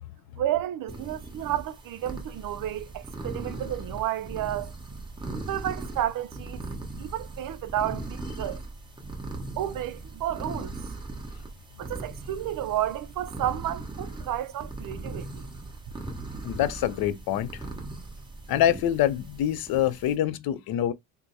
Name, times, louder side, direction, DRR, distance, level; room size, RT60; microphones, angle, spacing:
voice 1, 0.4-4.7 5.5-6.6 7.0-8.6 9.6-10.7 11.8-15.4, right 12 dB, 60° right, 0.5 m, -31 dB
sound 1, 0.9-20.1, right 2 dB, 10° right, 1.0 m, -39 dB
voice 2, 16.4-17.6 18.5-20.9, left 11 dB, 65° left, 0.5 m, -25 dB
4.6 x 2.1 x 2.6 m
cardioid pair, 120°, 39 cm